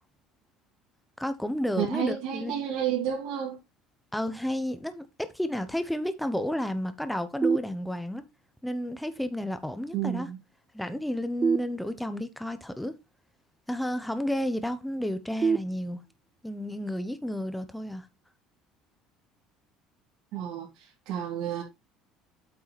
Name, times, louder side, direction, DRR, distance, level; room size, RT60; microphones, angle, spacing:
voice 1, 1.2-2.7 4.1-8.3 8.6-10.3 10.7-13.0 13.7-16.0 16.4-18.1, left 1 dB, ahead, 0.8 m, -31 dB
voice 2, 1.8-3.6 9.9-10.4 20.3-21.6, right 9 dB, 65° right, 2.8 m, -31 dB
sound 1, 7.4-8.4 11.4-12.4 15.4-16.4, right 5 dB, 20° right, 0.3 m, -29 dB
8.4 x 5.5 x 4.1 m
cardioid pair, 150°, 0 cm